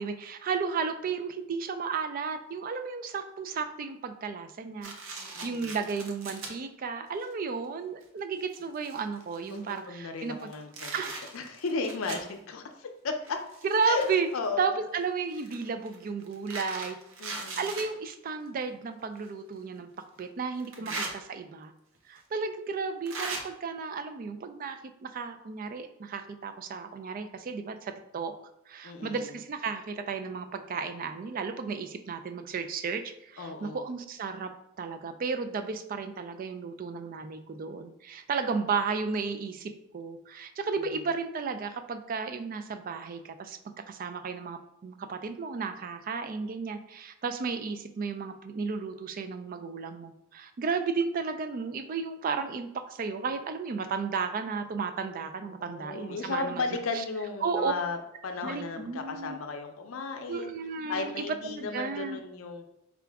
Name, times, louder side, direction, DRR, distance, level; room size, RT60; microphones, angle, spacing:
voice 1, 0.0-10.4 10.9-11.1 13.6-14.3 14.6-17.0 17.6-19.9 20.2-21.7 22.1-28.3 28.7-43.6 43.9-56.6 56.9-57.0 57.4-57.7 58.4-59.4 60.3-62.2, right 5 dB, 45° right, 9 dB, 0.3 m, -33 dB
sound 1, 4.8-6.5 7.2-7.3 8.0-8.1 8.4-9.8 10.3-12.3 13.2-14.3 15.3-17.9 19.2-19.3 20.6-21.1 22.2-22.3 23.1-23.4, right 3 dB, 75° right, 0.7 m, -39 dB
voice 2, 5.2-5.7 9.4-13.4 13.9-14.7 17.2-17.6 20.8-21.1 28.8-29.4 33.4-33.9 41.0-41.1 55.4-58.0 58.2-60.5 60.9-62.6, left 4 dB, 80° left, 5 dB, 0.5 m, -35 dB
4.7 x 2.5 x 3.4 m, 0.85 s
head